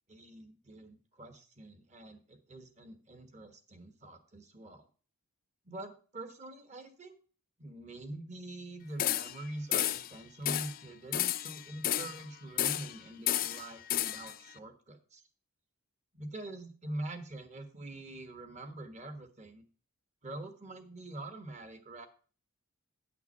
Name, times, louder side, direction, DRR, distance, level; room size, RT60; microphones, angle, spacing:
voice 1, 0.1-4.9 5.6-7.1 7.6-15.2 16.1-19.7 20.2-22.1, right 1 dB, 30° right, 7 dB, 1.3 m, -45 dB
sound 1, 9.0-9.4 9.7-10.1 10.5-10.8 11.1-12.2 12.6-13.0 13.3-14.3, left 12 dB, 40° left, 0.4 m, -32 dB
10.0 x 5.9 x 5.4 m, 0.39 s
head